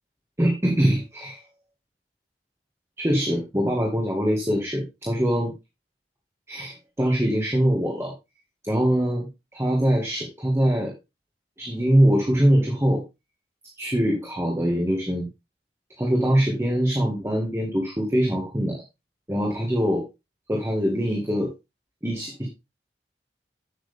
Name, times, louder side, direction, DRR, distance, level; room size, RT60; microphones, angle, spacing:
voice 1, 0.4-1.4 3.0-5.5 6.5-8.1 8.6-10.9 11.6-13.0 13.8-15.3 16.0-18.8 19.3-20.0 20.5-21.5 22.0-22.5, equal, 15° right, 0 dB, 1.9 m, -23 dB
8.0 x 8.0 x 3.4 m, 0.24 s
head